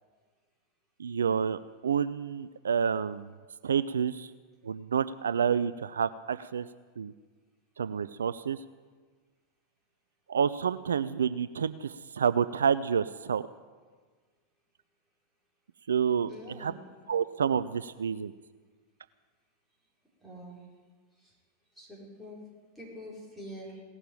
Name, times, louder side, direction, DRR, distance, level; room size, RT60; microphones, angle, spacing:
voice 1, 1.0-3.3 3.6-4.3 4.6-6.7 7.0-7.1 7.8-8.6 10.3-13.4 15.9-16.3 16.6-16.7 17.1-18.3, right 7 dB, 70° right, 14 dB, 0.3 m, -29 dB
voice 2, 16.3-16.8 20.2-20.7 21.2-21.4 21.7-22.4 22.7-23.8, equal, ahead, -4 dB, 4.9 m, -45 dB
17.5 x 6.7 x 8.9 m, 1.5 s
figure-of-eight pair, 90°, 0 cm